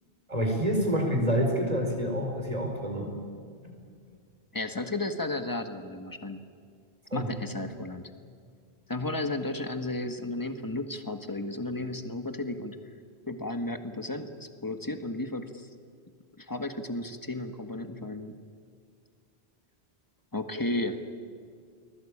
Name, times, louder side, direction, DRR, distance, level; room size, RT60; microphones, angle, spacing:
voice 1, 0.3-3.1 7.1-7.3, equal, 35° right, 2 dB, 4.8 m, -27 dB
voice 2, 4.5-6.4 7.1-8.1 8.9-12.8 13.3-15.7 16.4-18.3 20.3-21.0, left 2 dB, 20° left, 7 dB, 1.7 m, -33 dB
30.0 x 20.5 x 8.7 m, 2.2 s
omnidirectional pair, 1.1 m